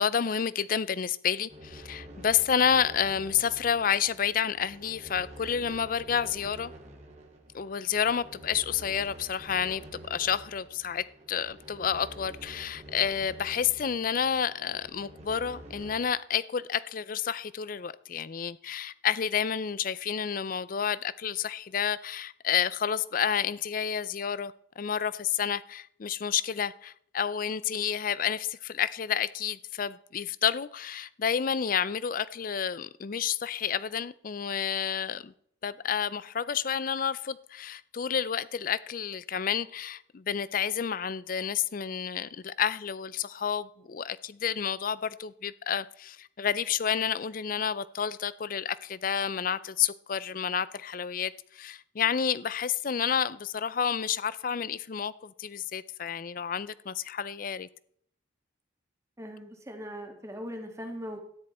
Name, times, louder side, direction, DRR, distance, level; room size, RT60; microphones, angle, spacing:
voice 1, 0.0-6.7 7.5-9.8 10.1-35.3 35.6-57.7, left 8 dB, 45° left, 0.4 m, -30 dB
sound 1, 1.5-16.0, right 1 dB, 35° right, 2.0 m, -48 dB
voice 2, 59.2-61.2, equal, 15° right, 1.7 m, -40 dB
13.0 x 10.0 x 4.3 m
head